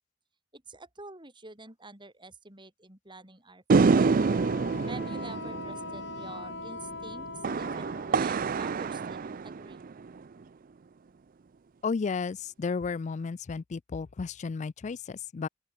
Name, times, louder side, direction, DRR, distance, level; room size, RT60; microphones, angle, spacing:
voice 1, 0.5-4.1 4.9-7.3 7.6-9.8, right 2 dB, 25° right, 5.5 m, -48 dB
sound 1, 3.7-10.2, right 4 dB, 50° right, 0.4 m, -27 dB
Wind instrument woodwind instrument, 3.8-8.2, left 4 dB, 65° left, 2.2 m, -41 dB
voice 2, 11.8-15.5, left 5 dB, 40° left, 0.4 m, -33 dB
open air
head